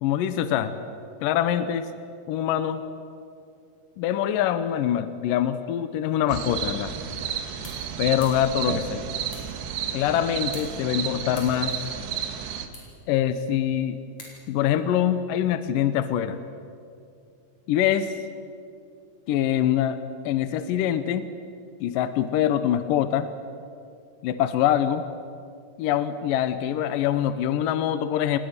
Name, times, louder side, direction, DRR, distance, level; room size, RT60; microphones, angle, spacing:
voice 1, 0.0-0.8 1.2-1.9 2.3-2.8 4.0-6.9 8.0-9.1 9.9-11.8 13.1-14.0 14.5-16.4 17.7-18.1 19.3-20.0 20.3-21.3 21.8-23.3 24.2-25.0 25.8-28.4, left 10 dB, 75° left, 11 dB, 2.1 m, -24 dB
sound 1, 6.3-12.7, right 8 dB, 80° right, 3.5 m, -32 dB
sound 2, 7.0-14.8, left 2 dB, 40° left, 5.7 m, -49 dB
28.0 x 19.5 x 6.6 m, 2.4 s
omnidirectional pair, 4.8 m